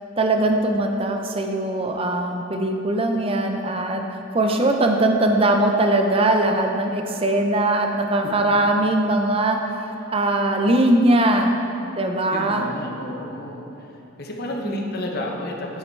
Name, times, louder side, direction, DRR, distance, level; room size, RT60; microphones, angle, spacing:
voice 1, 0.2-9.6 10.1-11.6 11.9-12.7 14.6-15.0, right 1 dB, 25° right, 3 dB, 0.5 m, -21 dB
voice 2, 12.3-15.8, left 1 dB, 45° left, 0 dB, 0.9 m, -32 dB
9.1 x 5.7 x 4.5 m, 3.0 s
head